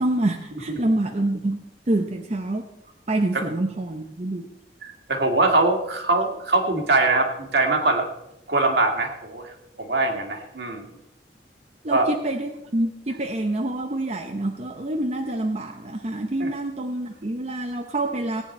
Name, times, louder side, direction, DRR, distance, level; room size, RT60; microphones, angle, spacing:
voice 1, 0.0-2.7 3.1-4.5 11.8-18.4, right 1 dB, 40° right, 4 dB, 0.8 m, -26 dB
voice 2, 4.8-8.1 8.5-10.9 11.9-12.1 16.4-16.5, right 2 dB, 65° right, 3 dB, 2.0 m, -22 dB
17.5 x 9.5 x 4.3 m, 0.89 s
head